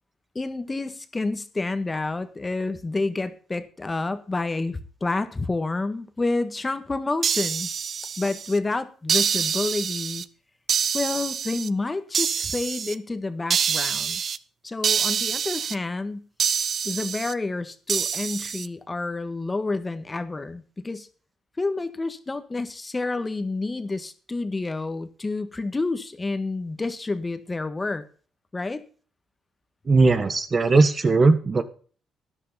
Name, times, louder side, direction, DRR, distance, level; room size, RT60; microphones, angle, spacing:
voice 1, 0.3-7.7 8.2-10.2 10.9-14.2 14.6-16.3 16.8-21.1 21.6-28.0 28.5-28.8, left 3 dB, 20° left, 10 dB, 1.6 m, -29 dB
sound 1, 7.2-8.6 9.1-10.3 10.7-11.7 12.1-13.0 13.5-14.4 14.8-15.8 16.4-17.3 17.9-18.7, right 7 dB, 50° right, 0.7 m, -26 dB
voice 2, 29.8-31.6, right 3 dB, 35° right, 10 dB, 1.6 m, -18 dB
13.0 x 11.0 x 4.2 m, 0.40 s
cardioid pair, 90°, 0 cm